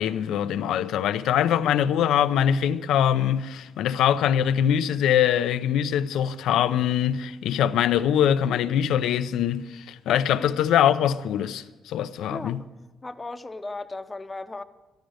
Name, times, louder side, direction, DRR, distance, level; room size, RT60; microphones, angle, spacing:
voice 1, 0.0-12.6, left 9 dB, 85° left, 0.6 m, -23 dB
voice 2, 12.3-12.7 13.0-14.6, left 2 dB, 20° left, 0.8 m, -36 dB
14.0 x 11.5 x 6.4 m
cardioid pair, 90°, 0 cm